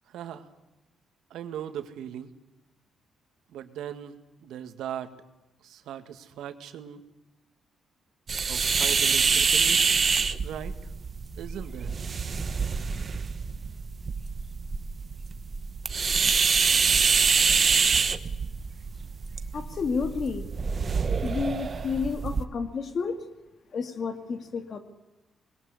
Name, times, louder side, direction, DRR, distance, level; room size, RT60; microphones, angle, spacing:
voice 1, 0.1-0.4 1.3-2.3 3.5-5.1 5.6-7.0 8.5-9.8 10.4-10.7 11.4-11.9, right 10 dB, 90° right, 8 dB, 2.1 m, -38 dB
sound 1, 8.3-22.4, right 5 dB, 30° right, 1.1 m, -26 dB
voice 2, 19.5-20.5 21.2-23.2 23.7-24.8, left 5 dB, 40° left, 7 dB, 2.3 m, -31 dB
25.5 x 21.0 x 9.8 m, 0.98 s
cardioid pair, 175°, 0 cm